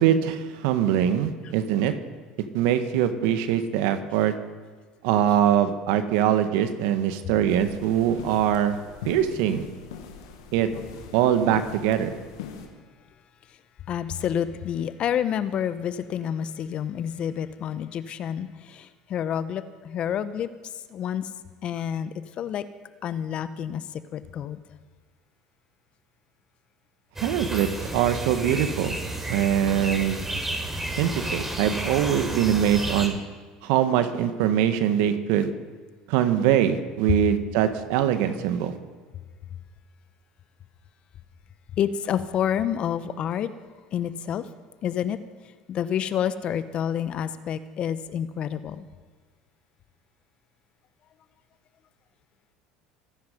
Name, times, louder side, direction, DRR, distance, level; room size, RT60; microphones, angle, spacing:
voice 1, 0.0-1.9 2.5-4.3 5.0-8.8 9.0-9.7 10.5-10.7 11.1-12.1 27.2-29.0 29.3-30.2 31.0-33.2 33.6-35.5 36.1-38.8, right 10 dB, 70° right, 1.5 m, -23 dB
sound 1, 7.5-12.7, left 7 dB, 80° left, 2.1 m, -42 dB
voice 2, 13.9-21.3 21.6-22.7 23.0-24.6 32.8-32.9 37.1-37.2 41.8-43.5 43.9-44.5 44.8-45.2 45.4-48.8, left 9 dB, 50° left, 1.0 m, -29 dB
sound 2, 27.2-33.1, right 2 dB, 15° right, 4.0 m, -31 dB
25.0 x 10.5 x 5.4 m
hypercardioid pair, 75°, 2 cm